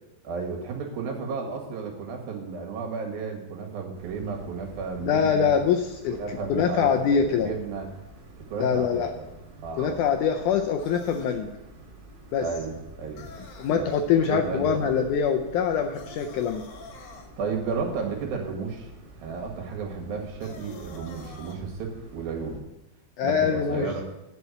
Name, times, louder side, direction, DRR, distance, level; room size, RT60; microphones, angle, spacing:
voice 1, 0.2-5.5 6.1-7.9 8.4-9.3 9.6-10.0 12.4-13.3 13.7-13.9 14.3-14.9 17.4-18.9 19.2-22.6 23.2-24.0, right 5 dB, 80° right, 1 dB, 3.5 m, -33 dB
sound 1, 3.9-22.6, right 2 dB, 40° right, 1.7 m, -48 dB
voice 2, 5.0-7.5 8.6-9.1 9.7-11.6 12.3-12.5 13.6-16.7 23.2-23.9, left 7 dB, 80° left, 4 dB, 1.8 m, -24 dB
sound 2, 10.8-11.4 13.2-13.8 15.9-17.3 20.4-21.6, left 4 dB, 65° left, 2.5 m, -46 dB
11.0 x 5.6 x 8.0 m, 0.92 s
omnidirectional pair, 4.2 m